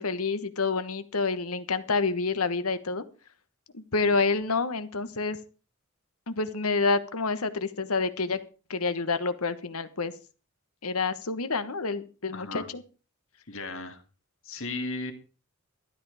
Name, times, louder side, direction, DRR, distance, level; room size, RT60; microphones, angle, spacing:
voice 1, 0.0-3.0 3.7-5.4 6.3-8.4 8.7-10.1 10.8-12.8, left 4 dB, 85° left, 12 dB, 1.3 m, -28 dB
voice 2, 12.3-12.7 13.5-14.0 14.4-15.1, left 3 dB, 65° left, 7 dB, 2.3 m, -35 dB
13.0 x 11.0 x 4.9 m, 0.36 s
head